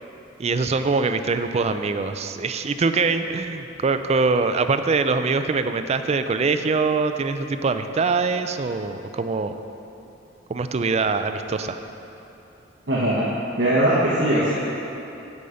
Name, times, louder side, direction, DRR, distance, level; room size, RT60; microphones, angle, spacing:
voice 1, 0.4-9.5 10.5-11.8, right 4 dB, 35° right, 8 dB, 0.4 m, -23 dB
voice 2, 12.9-13.3 13.6-14.5, right 1 dB, 65° right, -7 dB, 1.1 m, -20 dB
9.4 x 5.0 x 6.9 m, 3.0 s
head